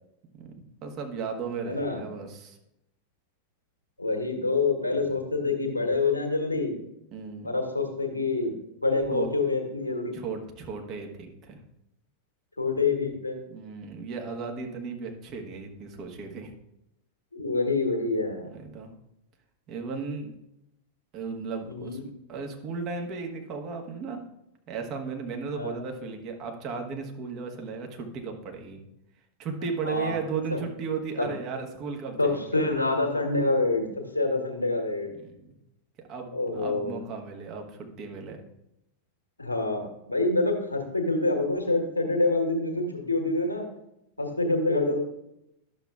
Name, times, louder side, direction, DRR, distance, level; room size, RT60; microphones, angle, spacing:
voice 1, 0.4-2.6 4.9-5.2 7.1-7.5 9.1-9.3 10.1-11.6 13.5-16.5 18.5-18.9 19.7-20.3 21.1-24.2 24.7-28.8 29.4-32.4 35.2-35.5 36.1-38.4, right 5 dB, 35° right, 3 dB, 1.3 m, -35 dB
voice 2, 1.6-2.0 4.0-6.7 7.4-8.5 8.8-10.2 12.6-13.4 17.3-18.5 21.7-22.0 25.5-25.8 29.8-30.2 30.5-30.6 31.2-31.3 32.2-33.8 34.1-35.1 36.3-36.9 39.4-43.7 44.2-45.0, left 3 dB, 80° left, 3 dB, 1.4 m, -26 dB
11.5 x 6.9 x 2.4 m, 0.83 s
figure-of-eight pair, 90°, 0 cm